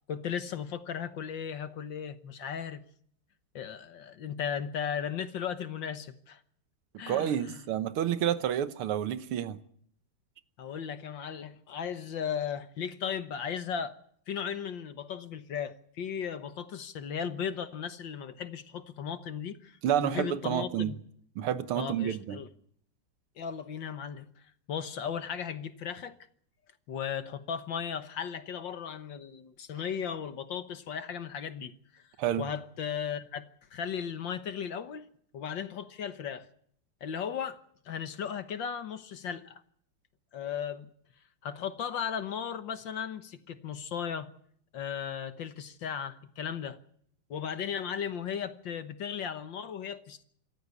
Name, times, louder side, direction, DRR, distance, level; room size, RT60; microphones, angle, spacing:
voice 1, 0.1-2.8 3.6-6.4 7.0-7.6 10.6-14.0 14.3-21.0 21.8-22.5 23.4-24.3 24.7-26.2 26.9-32.0 32.4-33.5 33.7-35.1 35.3-36.5 37.0-37.6 37.9-39.6 40.3-40.9 41.4-44.3 44.7-46.8 47.3-50.2, left 8 dB, 65° left, 1.8 m, -36 dB
voice 2, 7.1-9.6 19.8-20.9 21.4-22.4 32.2-32.5, right 10 dB, 85° right, 2.0 m, -29 dB
26.5 x 14.5 x 8.3 m
omnidirectional pair, 2.3 m